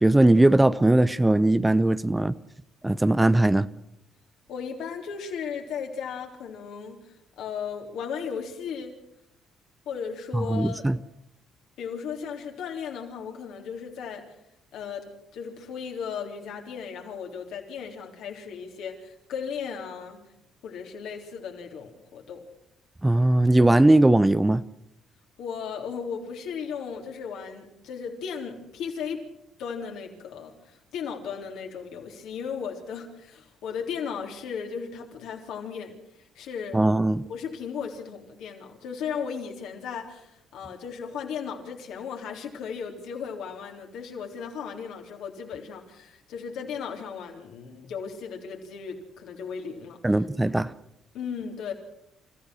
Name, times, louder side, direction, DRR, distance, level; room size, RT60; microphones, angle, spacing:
voice 1, 0.0-2.3 2.8-3.7 10.3-11.0 23.0-24.6 36.7-37.2 50.0-50.7, right 1 dB, 15° right, 15 dB, 0.8 m, -19 dB
voice 2, 4.5-9.0 9.9-10.9 11.8-14.3 14.7-20.3 20.6-22.5 25.4-29.3 29.6-35.9 36.4-36.9 37.3-50.0 51.1-51.7, left 6 dB, 70° left, 2 dB, 3.7 m, -36 dB
29.0 x 15.0 x 6.4 m, 0.79 s
hypercardioid pair, 50°, 0 cm